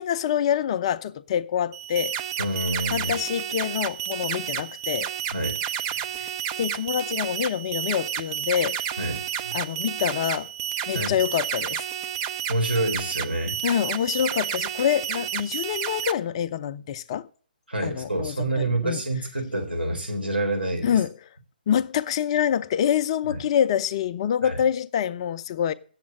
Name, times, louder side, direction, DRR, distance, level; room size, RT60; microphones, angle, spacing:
voice 1, 0.0-2.2 2.9-5.1 6.6-8.8 9.5-10.5 10.9-11.9 13.6-17.3 17.8-19.0 20.8-21.1 21.7-25.7, left 9 dB, 35° left, 0.5 m, -26 dB
sound 1, 1.7-16.1, right 9 dB, 25° right, 0.6 m, -31 dB
voice 2, 2.4-3.1 5.3-5.6 9.0-9.5 10.9-11.1 12.5-13.6 17.7-21.0 23.3-23.4 24.4-24.6, right 1 dB, 85° right, 4.2 m, -27 dB
8.6 x 7.3 x 8.6 m
figure-of-eight pair, 135°, 5 cm